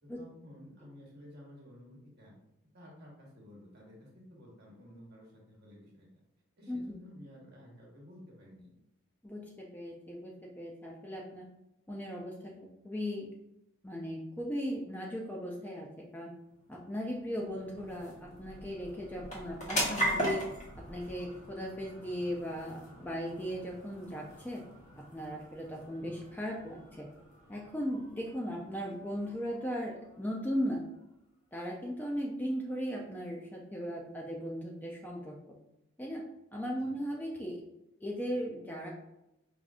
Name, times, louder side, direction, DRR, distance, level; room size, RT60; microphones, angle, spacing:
voice 1, 0.0-2.3 2.7-6.2 6.6-8.7 19.2-19.5 25.9-26.2 36.7-37.0, left 1 dB, 50° right, -3 dB, 1.1 m, -53 dB
voice 2, 9.2-11.5 11.9-13.3 13.8-16.3 16.7-20.4 20.9-24.6 25.1-27.1 27.5-30.8 31.5-35.4 36.0-36.3 36.5-37.6 38.0-38.9, equal, 10° left, -1 dB, 0.3 m, -37 dB
sound 1, 16.3-31.2, equal, 35° left, 1.0 m, -41 dB
4.9 x 2.5 x 2.4 m, 0.88 s
head